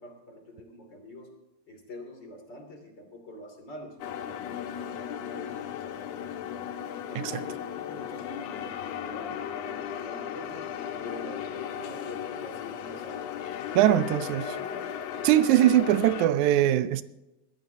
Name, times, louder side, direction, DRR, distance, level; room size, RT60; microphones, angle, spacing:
voice 1, 0.0-1.3 1.7-6.6 7.1-10.6 11.0-13.2 13.9-14.2 14.5-14.8, left 2 dB, 40° left, 3.4 m, -44 dB
sound 1, 4.0-16.3, left 9 dB, 70° left, 1.9 m, -36 dB
voice 2, 13.8-14.4 15.2-17.0, right 12 dB, 85° right, 2.1 m, -21 dB
20.5 x 15.0 x 2.8 m
omnidirectional pair, 3.3 m